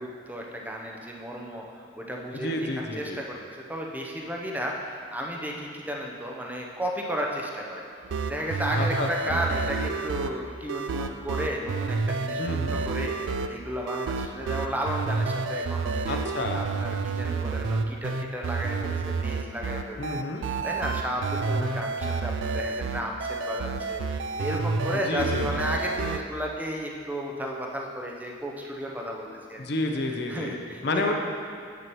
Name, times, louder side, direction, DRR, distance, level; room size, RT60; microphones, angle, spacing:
voice 1, 0.0-7.8 8.3-16.2 16.5-20.2 20.6-29.6 30.1-31.1, equal, 10° right, -1 dB, 0.6 m, -33 dB
voice 2, 2.3-3.2 8.8-9.4 12.4-12.8 16.1-16.6 20.0-20.5 24.9-25.6 29.6-30.6 30.8-31.1, left 2 dB, 55° left, 3 dB, 0.6 m, -30 dB
sound 1, 8.0-26.2, right 4 dB, 70° right, 0.3 m, -30 dB
9.4 x 7.5 x 3.1 m, 2.2 s
head